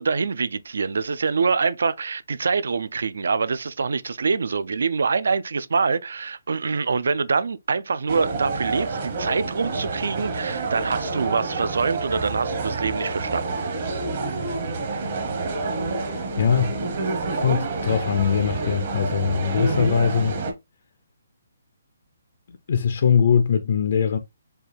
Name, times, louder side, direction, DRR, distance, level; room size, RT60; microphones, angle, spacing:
voice 1, 0.0-13.5, right 5 dB, 70° right, 0.4 m, -25 dB
sound 1, 8.1-20.5, right 3 dB, 35° right, 0.9 m, -28 dB
voice 2, 16.1-16.8 17.3-20.4 22.5-24.2, left 7 dB, 45° left, 0.4 m, -22 dB
4.5 x 2.3 x 3.3 m
hypercardioid pair, 175°, 0 cm